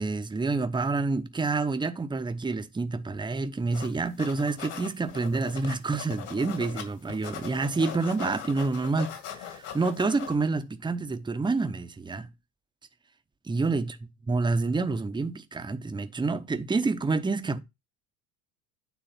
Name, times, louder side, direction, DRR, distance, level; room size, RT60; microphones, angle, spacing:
voice 1, 0.0-12.3 13.5-14.0 14.3-17.6, right 3 dB, 10° right, 0.8 m, -28 dB
sound 1, 3.7-3.9 4.2-6.8 7.1-10.3, left 9 dB, 55° left, 2.5 m, -40 dB
9.4 x 3.4 x 5.6 m
hypercardioid pair, 80°, 47 cm